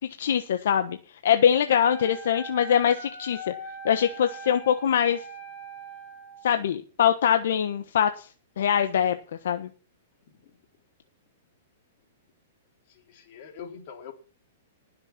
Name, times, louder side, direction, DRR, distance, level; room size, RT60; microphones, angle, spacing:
voice 1, 0.2-1.0 1.2-3.5 3.8-5.2 6.4-8.3 8.6-9.2 9.4-9.7, left 9 dB, 75° left, 1.2 m, -23 dB
Wind instrument woodwind instrument, 1.7-6.5, right 1 dB, 20° left, 2.8 m, -41 dB
voice 2, 12.9-14.1, left 7 dB, 50° left, 3.7 m, -43 dB
19.5 x 6.7 x 5.9 m
hypercardioid pair, 140°, 0 cm